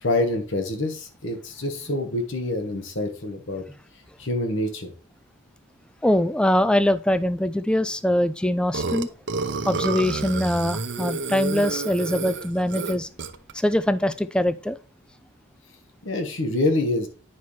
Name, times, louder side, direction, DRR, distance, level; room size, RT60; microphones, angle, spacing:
voice 1, 0.0-3.6 4.2-4.9 16.0-17.1, left 2 dB, 60° left, 6 dB, 1.3 m, -26 dB
voice 2, 6.0-9.1 9.6-13.1 13.5-14.8, left 1 dB, 5° left, 13 dB, 0.3 m, -23 dB
Burping eructation, 8.7-13.5, right 3 dB, 55° right, 0.7 m, -29 dB
9.4 x 5.5 x 3.2 m, 0.36 s
head